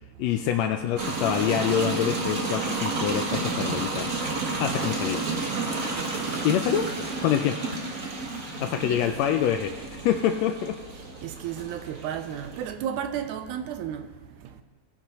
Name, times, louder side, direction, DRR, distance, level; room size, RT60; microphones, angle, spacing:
voice 1, 0.2-5.2 6.4-6.9 7.2-7.7 8.6-10.8, left 10 dB, 85° left, 1.5 m, -26 dB
sound 1, 1.0-12.7, right 3 dB, 50° right, 1.0 m, -31 dB
voice 2, 6.0-6.5 8.3-8.4 8.8-9.0 11.2-14.1 14.4-14.5, right 9 dB, 80° right, 2.1 m, -33 dB
19.0 x 10.0 x 3.0 m
omnidirectional pair, 3.6 m